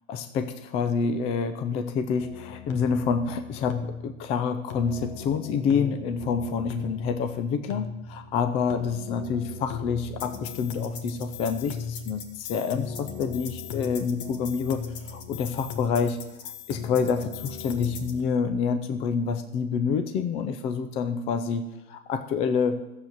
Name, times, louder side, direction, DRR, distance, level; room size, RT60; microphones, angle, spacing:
voice 1, 0.1-16.2 16.7-22.8, left 6 dB, 15° left, 9 dB, 0.5 m, -28 dB
sound 1, 2.2-18.2, left 6 dB, 40° left, 1.7 m, -37 dB
13.0 x 7.5 x 7.9 m, 0.95 s
hypercardioid pair, 130°, 40 cm